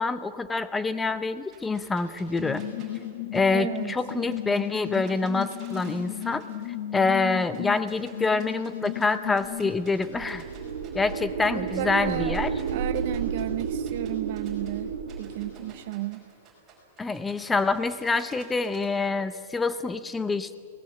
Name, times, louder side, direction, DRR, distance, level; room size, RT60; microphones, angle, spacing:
voice 1, 0.0-2.6 3.3-6.4 6.9-10.4 10.9-12.5 17.0-20.6, left 3 dB, 5° left, 13 dB, 0.6 m, -26 dB
sound 1, 1.5-6.7 6.9-9.1 9.4-14.7 15.1-18.9, right 6 dB, 15° right, 5.2 m, -53 dB
sound 2, 2.4-9.7, left 14 dB, 55° left, 1.4 m, -35 dB
voice 2, 3.5-3.9 11.4-12.4 12.7-16.3, right 16 dB, 45° right, 12 dB, 0.5 m, -33 dB
sound 3, 9.7-15.8, right 6 dB, 85° right, 2.7 m, -32 dB
23.0 x 18.5 x 7.7 m, 2.3 s
supercardioid pair, 170°, 0 cm